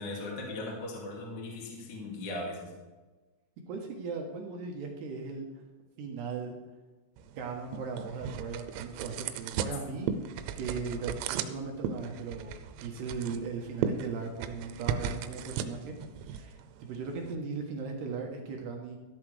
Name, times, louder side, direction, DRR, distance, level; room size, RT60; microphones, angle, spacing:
voice 1, 0.0-2.7, left 2 dB, 35° left, -3 dB, 1.9 m, -38 dB
voice 2, 3.7-5.5 6.0-6.5 7.4-10.1 10.6-12.5 12.8-16.0 16.3-19.0, right 4 dB, 70° right, 1 dB, 2.8 m, -37 dB
sound 1, 7.2-17.4, right 8 dB, 90° right, 3.4 m, -37 dB
13.5 x 12.5 x 3.4 m, 1.2 s
omnidirectional pair, 5.9 m